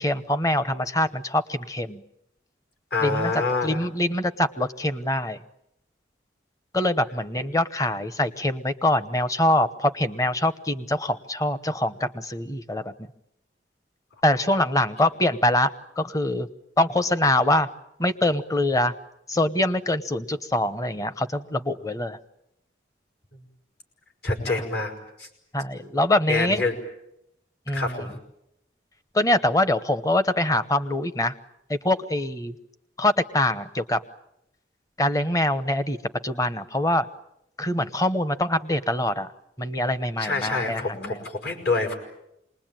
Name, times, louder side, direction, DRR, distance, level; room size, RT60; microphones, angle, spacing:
voice 1, 0.0-2.0 3.0-5.4 6.7-13.1 14.2-16.5 16.8-17.7 18.0-18.9 19.3-22.2 24.5-24.7 25.5-26.6 27.7-28.0 29.1-31.3 31.7-32.5 33.0-34.0 35.0-36.0 36.2-37.1 37.6-39.3 39.6-41.2, left 1 dB, 20° left, 12 dB, 1.0 m, -24 dB
voice 2, 2.9-3.9 24.2-24.9 25.2-25.3 26.3-26.7 27.7-28.1 40.2-42.0, left 3 dB, 65° left, 5 dB, 5.4 m, -26 dB
27.0 x 20.5 x 9.1 m, 0.83 s
head